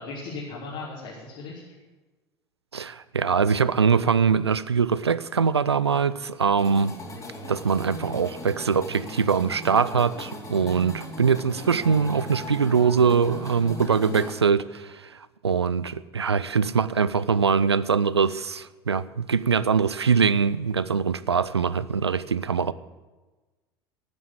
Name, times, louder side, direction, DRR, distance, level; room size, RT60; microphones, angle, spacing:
voice 1, 0.0-1.8 5.9-6.0 10.6-10.9, left 3 dB, 55° left, 3.6 m, -38 dB
voice 2, 2.7-7.0 7.5-22.7, right 6 dB, 85° right, 0.5 m, -23 dB
sound 1, 6.6-14.3, left 1 dB, 25° left, 3.3 m, -38 dB
12.5 x 9.6 x 8.5 m
figure-of-eight pair, 75°, 13 cm